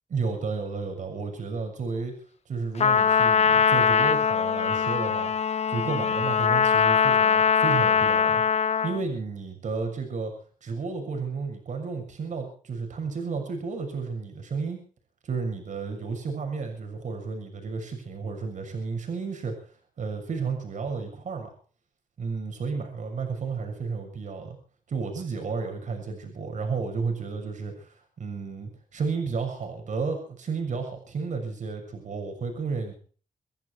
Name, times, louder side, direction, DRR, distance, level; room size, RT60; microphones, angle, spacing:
voice 1, 0.1-2.2 2.5-8.4 8.8-10.3 10.6-14.8 15.2-19.6 20.0-21.5 22.2-24.6 24.9-32.9, right 4 dB, 60° right, 4 dB, 6.5 m, -32 dB
Trumpet, 2.8-9.0, left 6 dB, 50° left, 0.8 m, -22 dB
26.5 x 11.0 x 4.7 m, 0.42 s
cardioid pair, 90°, 14 cm